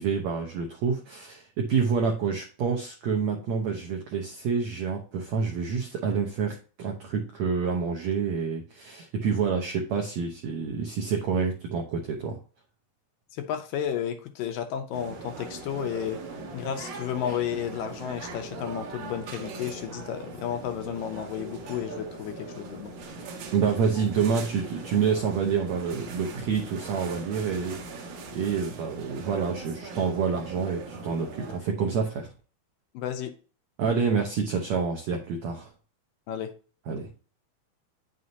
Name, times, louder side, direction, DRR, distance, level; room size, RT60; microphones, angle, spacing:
voice 1, 0.0-12.4 23.3-32.3 33.8-35.7 36.9-37.1, right 6 dB, 80° right, 1.6 m, -28 dB
voice 2, 13.3-22.9 32.9-33.4 36.3-36.5, left 9 dB, 75° left, 2.1 m, -32 dB
sound 1, 14.9-31.6, right 3 dB, 60° right, 2.3 m, -40 dB
9.4 x 6.3 x 2.8 m
omnidirectional pair, 4.4 m